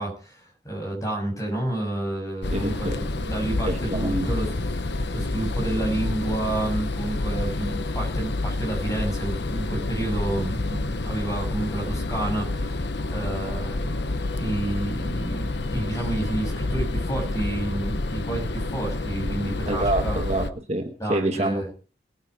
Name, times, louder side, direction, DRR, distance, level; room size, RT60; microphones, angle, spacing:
voice 1, 0.0-4.6 5.1-12.7 13.1-20.2 21.0-21.7, right 1 dB, 20° left, 0 dB, 7.6 m, -30 dB
sound 1, 2.4-20.5, left 2 dB, 65° left, 1.0 m, -28 dB
voice 2, 2.5-3.1 3.7-4.3 19.7-21.7, right 1 dB, 35° right, 5 dB, 1.3 m, -27 dB
21.5 x 9.2 x 4.9 m, 0.38 s
head